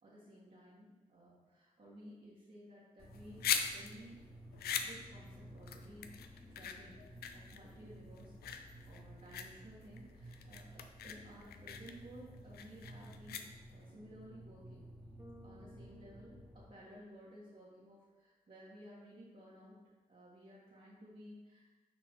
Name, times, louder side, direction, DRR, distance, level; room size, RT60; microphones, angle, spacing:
voice 1, 0.0-3.5 3.7-4.2 4.6-6.1 6.5-8.3 8.9-14.9 15.4-19.8 20.1-21.7, equal, 55° right, -8 dB, 1.7 m, -56 dB
sound 1, 3.0-13.9, left 7 dB, 85° left, 0.4 m, -42 dB
sound 2, 3.0-16.7, right 1 dB, 10° left, 1.5 m, -55 dB
Bass guitar, 15.2-17.5, right 1 dB, 15° right, 0.8 m, -60 dB
5.9 x 4.6 x 3.7 m, 1.2 s
supercardioid pair, 40°, 16 cm